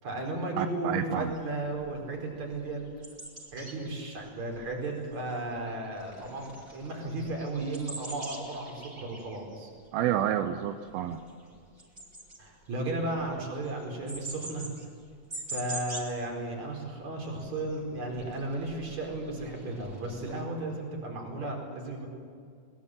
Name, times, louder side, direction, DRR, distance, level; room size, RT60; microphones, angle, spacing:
voice 1, 0.0-2.8 3.5-9.7 12.4-14.7 15.5-22.1, right 2 dB, 50° right, 1 dB, 5.8 m, -34 dB
voice 2, 0.6-1.3 9.9-11.2, right 11 dB, 90° right, 8 dB, 2.7 m, -29 dB
sound 1, 1.2-1.4 1.8-2.0 2.4-5.7 5.9-16.2 16.5-16.7 16.9-20.4, right 2 dB, 15° right, 3.0 m, -45 dB
22.5 x 20.5 x 7.7 m, 2.3 s
omnidirectional pair, 4.2 m